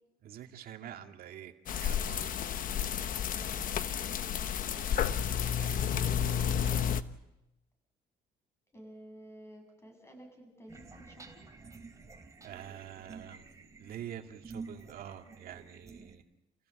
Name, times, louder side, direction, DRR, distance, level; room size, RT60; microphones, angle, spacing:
voice 1, 0.2-2.3 4.8-6.9 12.4-13.5 13.8-16.2, right 10 dB, 60° right, 4 dB, 2.2 m, -47 dB
sound 1, 1.7-7.0, left 8 dB, 55° left, 1.0 m, -31 dB
voice 2, 3.3-4.4 8.7-11.5, right 1 dB, 15° left, 3 dB, 7.9 m, -52 dB
sound 2, 10.7-16.2, right 4 dB, 20° right, 3.1 m, -50 dB
28.5 x 16.0 x 7.7 m, 0.94 s
cardioid pair, 110°, 17 cm